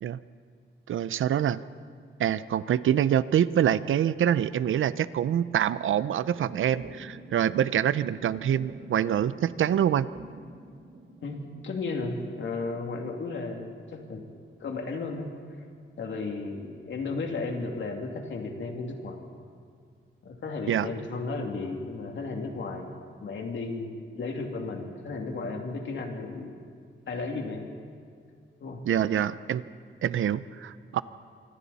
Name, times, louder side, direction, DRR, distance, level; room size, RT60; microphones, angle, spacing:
voice 1, 0.9-1.6 2.2-10.1 20.7-20.9 28.9-29.6 30.0-31.0, right 10 dB, 75° right, 15 dB, 0.6 m, -25 dB
sound 1, 3.0-3.9 4.5-4.9 5.7-16.7 17.1-17.6 17.9-18.0 18.5-19.1, right 1 dB, 45° right, 3.0 m, -49 dB
voice 2, 11.2-14.2 14.6-15.3 16.0-19.2 20.2-26.6 27.1-27.7 28.6-28.8, left 3 dB, 65° left, 2 dB, 2.6 m, -34 dB
26.0 x 24.5 x 4.2 m, 2.2 s
wide cardioid pair, 155°, 21 cm